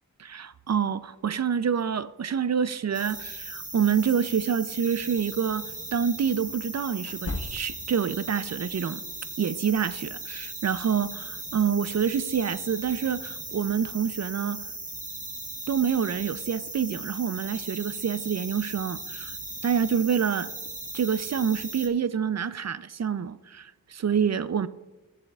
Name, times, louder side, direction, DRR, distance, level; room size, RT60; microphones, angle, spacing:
voice 1, 0.2-5.7 5.9-9.0 9.4-14.6 15.7-19.3 19.6-20.5 20.9-24.7, right 7 dB, 50° right, 0.4 m, -27 dB
sound 1, 2.9-21.9, right 2 dB, 20° right, 1.2 m, -38 dB
sound 2, 4.8-5.0 7.0-8.0, left 2 dB, 40° left, 0.9 m, -36 dB
16.5 x 7.0 x 2.4 m
wide cardioid pair, 70°, 36 cm